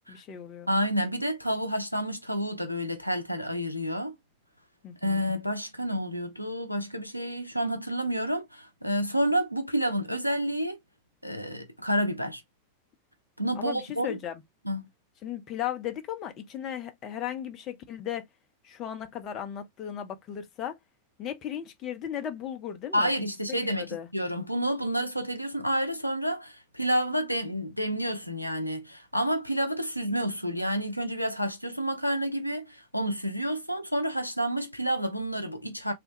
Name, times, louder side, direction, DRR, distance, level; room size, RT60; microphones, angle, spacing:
voice 1, 0.1-0.7 4.8-5.3 13.6-14.4 15.2-18.2 18.6-20.8 21.2-23.1 23.5-24.1, left 10 dB, 35° left, 0.6 m, -36 dB
voice 2, 0.7-4.1 5.0-10.8 11.2-12.4 13.4-14.1 14.6-14.9 22.9-35.9, equal, 90° left, 0.5 m, -29 dB
3.3 x 2.1 x 2.9 m
figure-of-eight pair, 90°, 0 cm